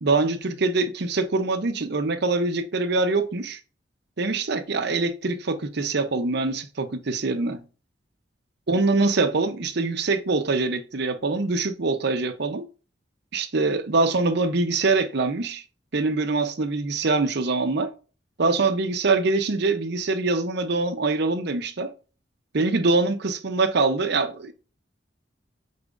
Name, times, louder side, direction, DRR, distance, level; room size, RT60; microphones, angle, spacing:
voice 1, 0.0-3.6 4.2-7.6 8.7-12.7 13.3-15.6 15.9-17.9 18.4-21.9 22.5-24.5, right 3 dB, 65° right, 0.7 m, -24 dB
9.7 x 4.2 x 2.5 m
head